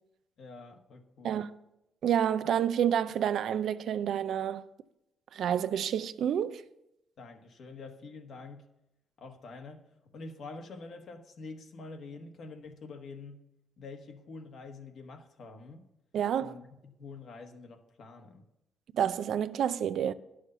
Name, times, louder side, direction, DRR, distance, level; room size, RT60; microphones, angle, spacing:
voice 1, 0.4-1.4 7.2-8.7 9.2-9.9 10.1-13.4 13.8-15.9 16.4-18.4, left 3 dB, 65° left, 1.4 m, -46 dB
voice 2, 2.0-4.6 5.3-6.6 16.1-16.5 18.9-20.1, right 9 dB, 70° right, 0.5 m, -29 dB
11.0 x 6.4 x 6.7 m
cardioid pair, 90°, 0 cm